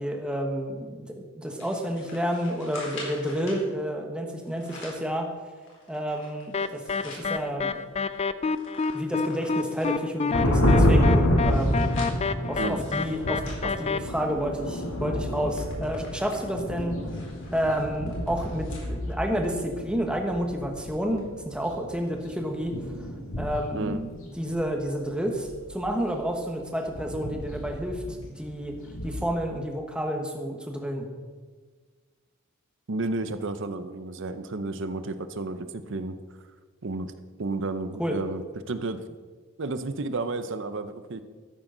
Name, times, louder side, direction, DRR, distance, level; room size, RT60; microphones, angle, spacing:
voice 1, 0.0-5.3 5.9-7.8 8.9-11.9 12.5-17.0 17.5-23.1 23.4-28.0 28.3-28.7 29.0-31.1 38.0-38.2, equal, 5° right, 2 dB, 1.3 m, -30 dB
sound 1, 1.6-3.6 4.4-5.1 5.6-7.3 7.7-7.8 8.1-10.1 10.7-14.4 14.8-15.0 15.3-18.9 19.3-19.4 20.3-20.4, left 2 dB, 65° left, 4.0 m, -45 dB
sound 2, 6.5-14.0, left 4 dB, 30° left, 0.4 m, -28 dB
sound 3, 10.3-24.0 24.4-24.8 25.4-26.1 26.7-29.3, left 1 dB, 80° left, 2.0 m, -28 dB
voice 2, 32.9-36.2 36.8-37.1 37.4-39.2 39.6-41.2, right 2 dB, 65° right, 11 dB, 0.7 m, -32 dB
13.0 x 10.5 x 3.9 m, 1.5 s
head